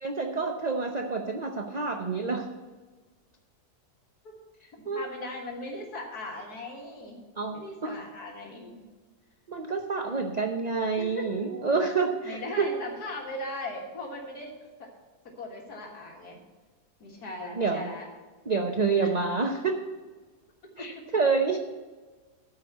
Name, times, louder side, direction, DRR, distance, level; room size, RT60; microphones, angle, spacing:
voice 1, 0.0-2.5 4.9-5.0 7.4-7.9 9.5-12.7 17.6-17.9 18.5-19.8 20.8-21.6, right 4 dB, 45° right, 4 dB, 0.5 m, -28 dB
voice 2, 4.9-7.2 7.5-8.8 10.0-10.3 11.0-11.5 12.2-14.5 14.8-14.9 15.2-16.4 17.0-18.1 19.0-19.2 20.8-21.2, left 2 dB, 65° left, 0 dB, 2.1 m, -38 dB
12.5 x 4.9 x 8.2 m, 1.3 s
omnidirectional pair, 1.8 m